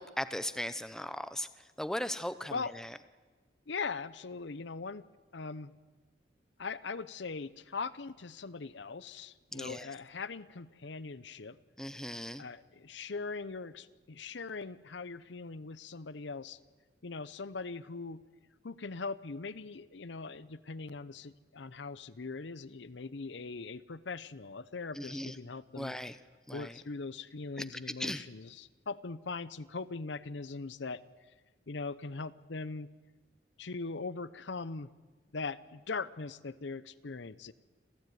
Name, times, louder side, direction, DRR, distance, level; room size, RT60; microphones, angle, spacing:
voice 1, 0.0-1.5 1.8-2.5 9.5-9.9 11.8-12.4 25.0-25.3 25.8-26.1 26.5-26.7 28.0-28.2, left 1 dB, 5° left, 12 dB, 0.7 m, -37 dB
voice 2, 3.7-5.0 5.3-5.7 6.6-11.6 12.4-16.6 17.0-18.2 18.6-25.9 26.5-31.0 31.7-32.9 33.6-34.9 35.3-37.5, left 4 dB, 75° left, 16 dB, 0.8 m, -40 dB
27.5 x 15.0 x 9.3 m, 1.3 s
head